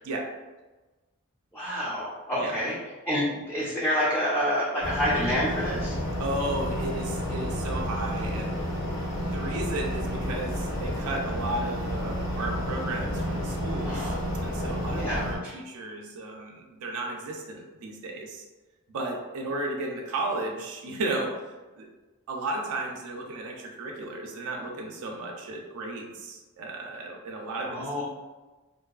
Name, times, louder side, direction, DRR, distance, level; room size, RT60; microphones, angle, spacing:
voice 1, 1.5-2.8 3.1-5.9 13.8-14.2 14.9-15.5 27.7-28.0, equal, 10° left, -8 dB, 0.4 m, -28 dB
sound 1, 4.8-15.4, equal, 55° left, 0.8 m, -31 dB
voice 2, 6.2-8.6 9.3-14.2 14.4-18.4 18.9-21.4 21.8-21.9 22.3-28.0, right 2 dB, 85° right, 0 dB, 0.4 m, -34 dB
2.6 x 2.2 x 2.3 m, 1.2 s
head